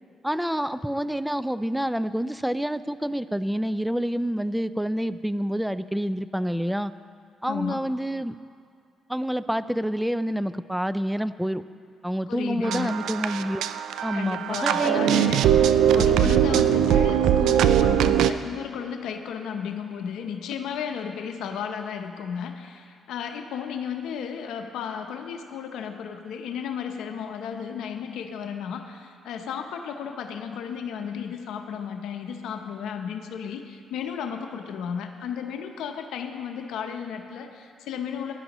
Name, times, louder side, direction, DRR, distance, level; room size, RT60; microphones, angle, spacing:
voice 1, 0.2-6.9 7.4-8.4 9.1-11.6 12.0-13.6 14.0-15.4, equal, 5° right, 14 dB, 0.3 m, -28 dB
voice 2, 7.5-7.8 12.3-13.0 14.1-15.4 15.9-38.3, left 7 dB, 85° left, 5 dB, 0.7 m, -33 dB
sound 1, 12.6-18.3, right 10 dB, 80° right, 0.4 m, -21 dB
16.5 x 11.0 x 3.0 m, 2.2 s
cardioid pair, 90°, 0 cm